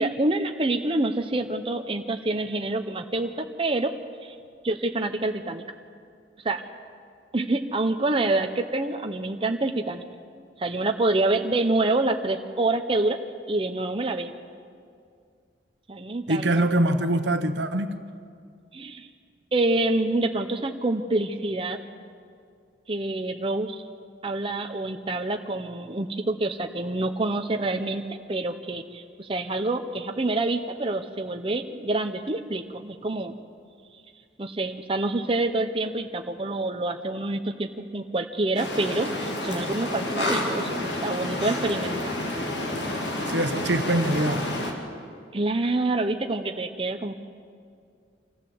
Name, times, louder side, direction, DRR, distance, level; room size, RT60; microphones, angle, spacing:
voice 1, 0.0-3.9 4.2-4.4 4.6-5.6 6.4-6.6 7.3-10.0 10.6-13.2 13.5-14.3 15.9-16.5 18.7-19.1 19.5-21.8 22.9-23.8 24.2-33.4 34.4-42.2 45.3-47.2, right 2 dB, 30° right, 5 dB, 0.8 m, -27 dB
voice 2, 16.3-18.0 43.3-44.5, right 1 dB, 75° right, 8 dB, 1.2 m, -24 dB
sound 1, 38.6-44.7, left 1 dB, 70° left, 2.8 m, -29 dB
25.5 x 14.5 x 7.9 m, 2.3 s
head